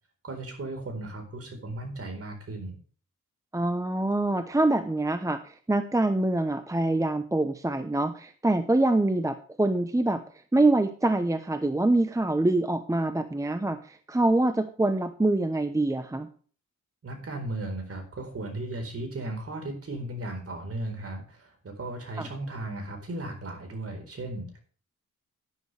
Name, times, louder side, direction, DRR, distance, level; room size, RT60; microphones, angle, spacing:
voice 1, 0.2-2.8 17.0-24.6, right 2 dB, 50° right, 4 dB, 4.2 m, -36 dB
voice 2, 3.5-10.2 10.5-16.3, right 2 dB, 10° right, 9 dB, 0.8 m, -25 dB
11.0 x 11.0 x 3.4 m, 0.42 s
cardioid pair, 95°, 31 cm